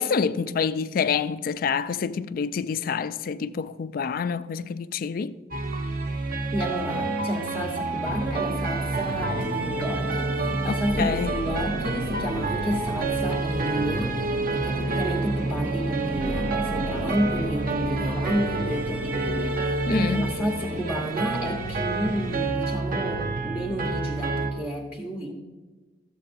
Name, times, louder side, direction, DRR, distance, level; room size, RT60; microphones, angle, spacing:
voice 1, 0.0-5.3 10.6-11.3 19.9-20.2, left 6 dB, 50° left, 0.3 m, -27 dB
sound 1, 5.5-24.5, right 3 dB, 50° right, 0.7 m, -29 dB
voice 2, 6.5-25.3, equal, 10° right, 1.0 m, -31 dB
sound 2, 8.1-21.4, right 1 dB, 85° right, 2.0 m, -34 dB
13.0 x 7.6 x 2.6 m
head